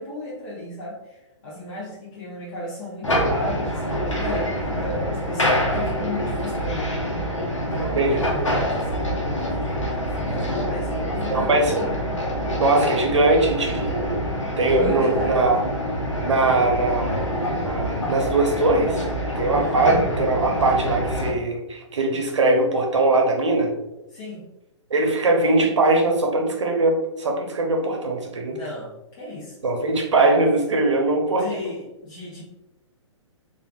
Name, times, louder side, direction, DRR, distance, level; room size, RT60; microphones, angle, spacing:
voice 1, 0.0-6.9 7.7-12.0 14.7-15.6 19.6-19.8 24.1-24.5 28.5-29.6 31.4-32.4, left 1 dB, 40° left, -7 dB, 0.7 m, -34 dB
sound 1, 3.0-21.3, equal, 80° left, 0.8 m, -26 dB
voice 2, 11.3-11.8 12.6-14.2 14.6-15.5 16.2-17.2 17.5-19.1 19.4-23.7 24.9-28.6 29.6-31.5, right 2 dB, 70° right, 1 dB, 0.8 m, -21 dB
3.3 x 2.4 x 2.3 m, 0.95 s
figure-of-eight pair, 125°, 16 cm